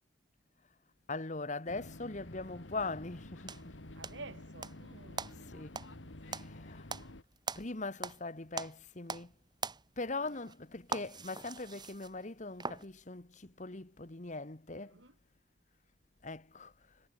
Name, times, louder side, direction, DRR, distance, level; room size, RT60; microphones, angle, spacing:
voice 1, 1.1-3.7 5.5-5.7 6.3-6.9 7.5-9.3 10.0-14.9 16.2-16.7, left 3 dB, 40° left, 1.4 m, -41 dB
sound 1, 1.7-7.2, left 1 dB, 80° left, 2.2 m, -50 dB
sound 2, 3.5-4.8 5.2-8.3 8.5-9.3 9.6-12.9, right 4 dB, 25° right, 2.9 m, -42 dB
voice 2, 4.0-5.6 10.2-10.5 14.7-15.2, right 3 dB, 75° right, 3.7 m, -52 dB
head